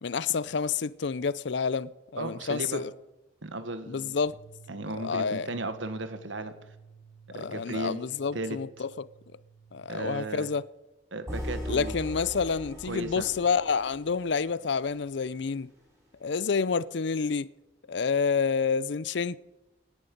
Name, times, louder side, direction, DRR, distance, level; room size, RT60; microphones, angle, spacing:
voice 1, 0.0-2.9 3.9-4.4 5.0-5.5 7.3-9.1 9.7-10.7 11.7-15.7 16.2-17.5 17.9-19.4, left 5 dB, 70° left, 0.5 m, -29 dB
voice 2, 2.2-2.8 3.4-4.2 4.7-6.5 7.3-8.0 8.3-8.6 9.9-10.5 11.1-12.0 12.9-13.3, right 2 dB, 80° right, 1.5 m, -35 dB
sound 1, 4.3-10.5, right 6 dB, 25° left, 6.8 m, -53 dB
sound 2, 11.3-15.4, equal, 15° right, 5.6 m, -39 dB
17.5 x 11.0 x 5.3 m
head